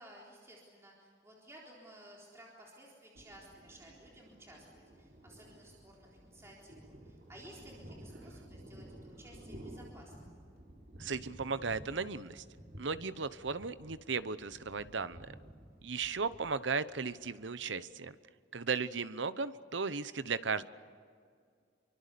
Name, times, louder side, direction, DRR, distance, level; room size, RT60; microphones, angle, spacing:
voice 1, 0.0-10.4, right 1 dB, 15° right, -3 dB, 3.9 m, -56 dB
Thunder, 3.1-17.9, right 1 dB, 55° right, 4.2 m, -53 dB
voice 2, 11.0-12.4 12.8-15.3 15.8-18.2 18.5-20.6, right 4 dB, 85° right, 14 dB, 0.9 m, -36 dB
27.5 x 24.5 x 6.9 m, 2.2 s
head